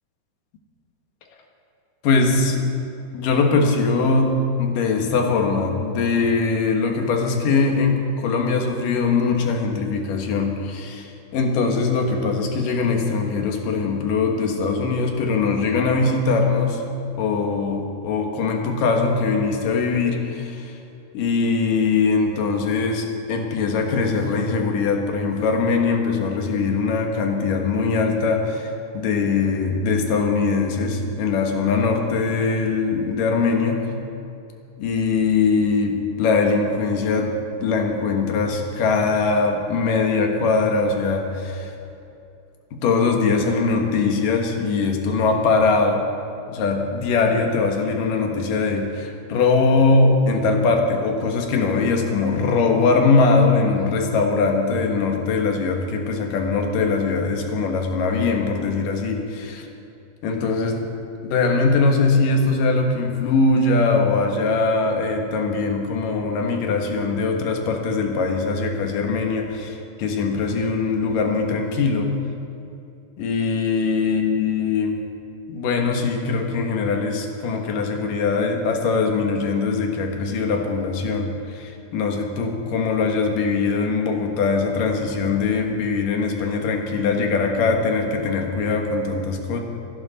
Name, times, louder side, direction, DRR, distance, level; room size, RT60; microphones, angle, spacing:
voice 1, 2.0-2.7 3.1-16.8 17.2-20.7 21.1-33.9 34.8-41.7 42.7-46.0 46.5-59.7 60.2-60.9 61.2-72.1 73.2-75.0 75.5-89.6, left 4 dB, 90° left, 3 dB, 3.1 m, -21 dB
26.5 x 11.5 x 4.2 m, 2.7 s
omnidirectional pair, 3.7 m